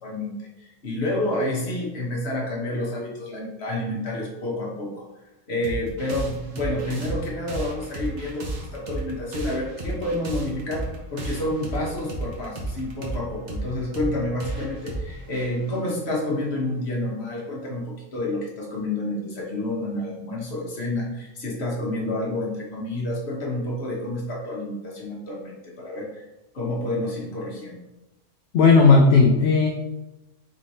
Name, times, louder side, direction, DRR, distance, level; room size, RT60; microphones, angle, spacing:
voice 1, 0.0-5.0 5.5-26.2 26.5-27.8, left 1 dB, 55° left, -2 dB, 1.3 m, -29 dB
sound 1, 5.6-16.7, right 1 dB, 40° right, 0.8 m, -34 dB
voice 2, 28.5-29.7, left 4 dB, 70° left, 1 dB, 0.9 m, -15 dB
3.7 x 3.1 x 4.1 m, 1.0 s
omnidirectional pair, 1.3 m